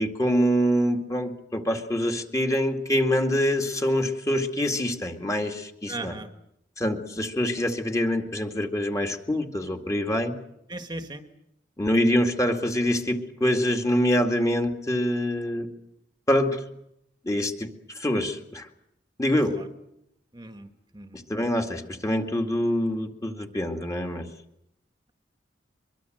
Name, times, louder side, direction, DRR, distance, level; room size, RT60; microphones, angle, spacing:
voice 1, 0.0-6.2 6.8-10.3 11.8-15.7 16.3-16.6 17.2-17.7 18.0-18.7 19.2-19.5 21.3-24.3, equal, 20° left, 4 dB, 2.2 m, -25 dB
voice 2, 5.9-6.3 10.7-11.2 20.3-20.7 20.9-21.2, right 2 dB, 25° right, 7 dB, 1.5 m, -36 dB
24.0 x 23.0 x 7.8 m, 0.81 s
head